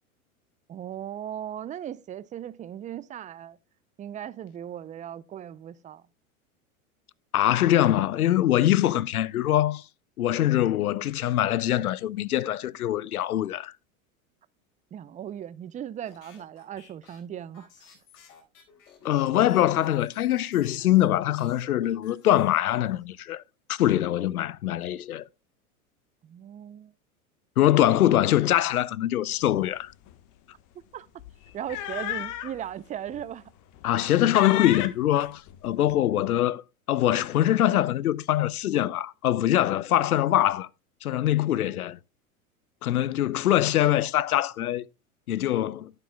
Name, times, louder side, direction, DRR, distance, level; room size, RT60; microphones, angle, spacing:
voice 1, 0.7-3.6 4.0-6.1 14.9-17.9 26.2-26.9 30.9-31.1 31.5-33.4 41.5-41.8, right 10 dB, 20° right, 0.5 m, -38 dB
voice 2, 7.3-9.8 10.2-13.7 19.0-23.4 23.7-25.2 27.6-29.9 33.8-36.6 36.9-40.7 41.0-42.0 42.8-44.8 45.3-45.9, left 13 dB, 90° left, 0.6 m, -23 dB
sound 1, 16.1-21.1 21.3-23.0, left 6 dB, 65° left, 4.4 m, -55 dB
sound 2, 29.4-29.6 29.9-30.1 31.2-32.6 33.1-33.2 33.7-34.1 34.3-35.9, left 13 dB, 45° left, 1.3 m, -33 dB
11.5 x 9.7 x 2.2 m
hypercardioid pair, 100°, 43 cm